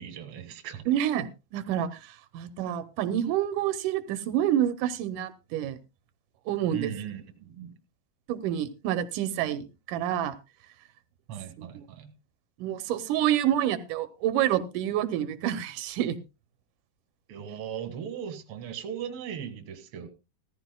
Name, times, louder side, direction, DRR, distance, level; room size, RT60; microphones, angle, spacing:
voice 1, 0.0-0.9 6.7-7.7 11.3-12.1 17.3-20.1, right 8 dB, 50° right, 2.1 m, -38 dB
voice 2, 0.9-5.8 6.5-6.9 8.3-10.4 11.8-11.9 12.6-16.2, right 11 dB, 90° right, 2.3 m, -28 dB
17.0 x 14.0 x 2.2 m
omnidirectional pair, 3.6 m